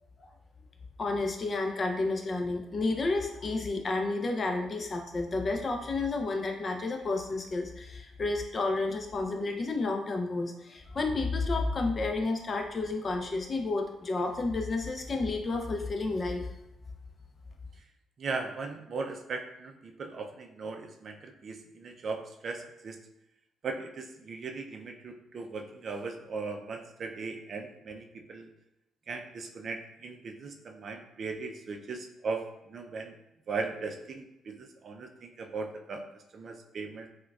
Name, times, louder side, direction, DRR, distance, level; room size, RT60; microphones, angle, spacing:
voice 1, 1.0-16.5, left 3 dB, 40° left, 3 dB, 0.5 m, -31 dB
voice 2, 18.2-23.0 23.6-28.5 29.1-33.1 33.5-36.0 36.3-37.1, right 4 dB, 50° right, 4 dB, 0.4 m, -38 dB
4.4 x 2.2 x 2.3 m, 0.86 s
cardioid pair, 90°, 0 cm